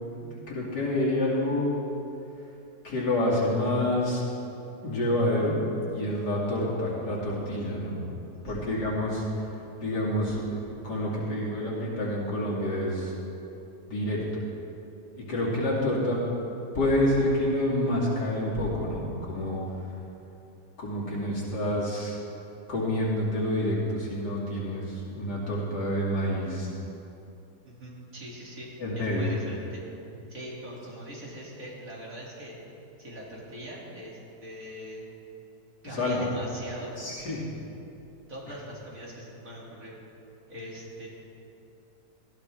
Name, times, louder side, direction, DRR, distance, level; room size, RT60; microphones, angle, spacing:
voice 1, 0.1-1.8 2.8-4.3 4.8-5.6 5.9-8.0 8.4-9.2 9.8-10.4 10.8-13.1 13.9-14.2 15.2-16.2 16.7-19.6 20.8-22.2 22.7-26.7 28.8-29.3 35.9-36.3 37.0-37.4, left 1 dB, 70° left, -5 dB, 3.2 m, -28 dB
voice 2, 8.3-8.6 27.6-28.7 29.0-29.8 30.3-32.6 33.0-35.0 35.8-37.0 38.3-39.9 40.5-41.1, right 1 dB, 50° right, -5 dB, 3.0 m, -41 dB
18.0 x 14.5 x 3.6 m, 2.9 s
omnidirectional pair, 1.9 m